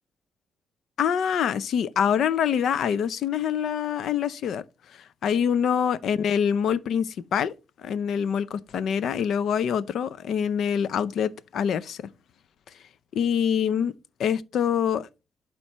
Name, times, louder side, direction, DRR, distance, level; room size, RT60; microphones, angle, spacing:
voice 1, 1.0-4.6 5.2-7.5 7.8-12.1 13.1-13.9 14.2-15.1, left 8 dB, 70° left, 0.5 m, -25 dB
11.5 x 4.4 x 2.9 m
wide cardioid pair, 165°, 0 cm